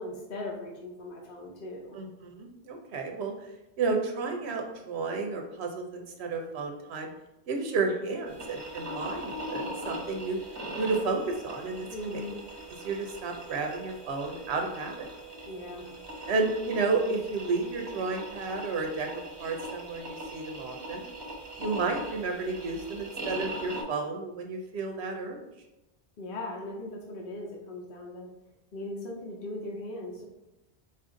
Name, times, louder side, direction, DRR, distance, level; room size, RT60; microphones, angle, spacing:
voice 1, 0.0-2.0 11.9-12.4 15.5-15.9 26.2-28.3 28.7-30.3, left 2 dB, 55° left, -2 dB, 0.8 m, -39 dB
voice 2, 1.9-3.5 3.8-7.1 7.5-10.4 10.8-12.2 12.8-15.1 16.3-19.1 19.4-21.1 21.6-25.4, right 4 dB, 80° right, 3 dB, 0.8 m, -32 dB
sound 1, 8.3-23.8, right 1 dB, 25° right, 0.8 m, -40 dB
4.1 x 2.5 x 3.7 m, 0.96 s
omnidirectional pair, 1.1 m